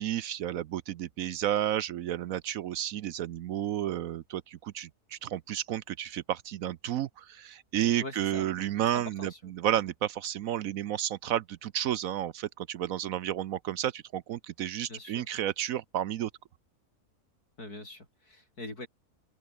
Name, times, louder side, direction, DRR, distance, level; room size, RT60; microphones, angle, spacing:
voice 1, 0.0-16.3, right 11 dB, 65° right, 1.0 m, -32 dB
voice 2, 8.0-8.5 8.8-9.4 14.9-15.3 17.6-18.9, left 2 dB, 75° left, 8.0 m, -43 dB
open air
omnidirectional pair, 1.6 m